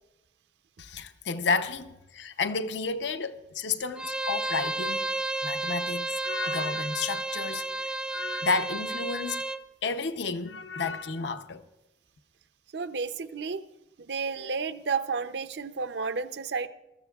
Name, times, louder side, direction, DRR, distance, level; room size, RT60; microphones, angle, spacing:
voice 1, 0.8-5.1 5.4-7.7 8.1-9.4 9.8-11.6, left 4 dB, 75° left, 0.7 m, -31 dB
Bowed string instrument, 4.0-9.6, right 2 dB, 5° right, 0.5 m, -32 dB
voice 2, 12.7-13.6 14.1-16.7, right 5 dB, 70° right, 0.6 m, -31 dB
22.0 x 13.5 x 2.4 m
head